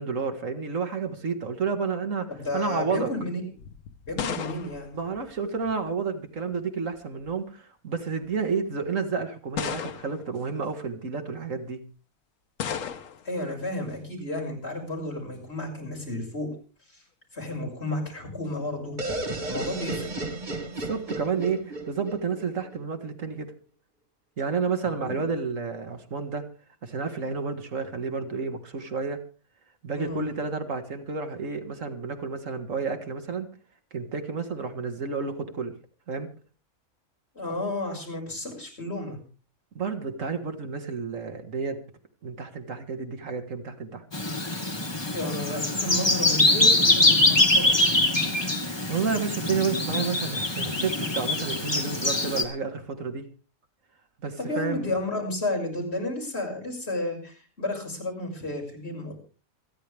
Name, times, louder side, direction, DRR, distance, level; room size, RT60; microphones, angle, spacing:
voice 1, 0.0-3.1 4.9-11.8 20.9-23.5 24.4-26.5 26.8-29.2 29.8-33.5 33.9-35.7 36.1-36.3 39.8-41.8 42.2-44.0 48.9-53.3 54.2-54.9, right 5 dB, 70° right, 7 dB, 2.1 m, -30 dB
voice 2, 2.3-3.4 4.1-4.9 13.2-16.5 16.9-17.0 17.3-19.0 19.5-20.1 25.0-25.1 30.0-30.2 37.3-39.2 45.0-47.9 54.4-59.1, left 2 dB, 50° left, -2 dB, 6.4 m, -32 dB
sound 1, 3.6-5.9 7.0-7.4 8.2-8.3 9.6-10.4 12.6-13.3, left 8 dB, 75° left, 1.3 m, -35 dB
sound 2, 19.0-22.8, right 2 dB, 35° right, 2.2 m, -33 dB
Bird vocalization bird call bird song, 44.1-52.4, left 2 dB, 20° left, 2.2 m, -23 dB
27.5 x 10.5 x 3.5 m, 0.36 s
omnidirectional pair, 1.4 m